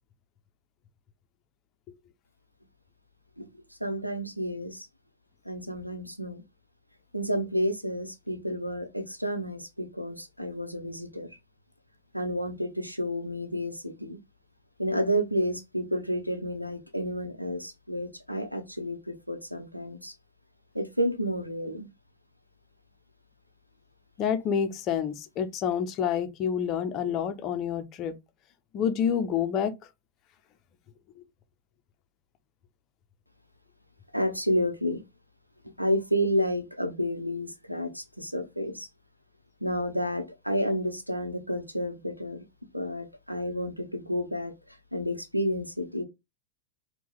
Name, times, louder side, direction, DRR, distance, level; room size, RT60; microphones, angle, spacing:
voice 1, 3.4-4.9 5.4-6.4 7.1-11.4 12.1-14.2 14.8-20.2 20.7-21.9 34.1-35.0 35.8-38.9 39.6-42.4 42.7-46.0, equal, 90° right, 0.7 m, -30 dB
voice 2, 24.2-28.2 28.7-29.7 31.2-31.3, left 8 dB, 35° left, 0.7 m, -28 dB
4.3 x 2.3 x 3.6 m
figure-of-eight pair, 90°, 0 cm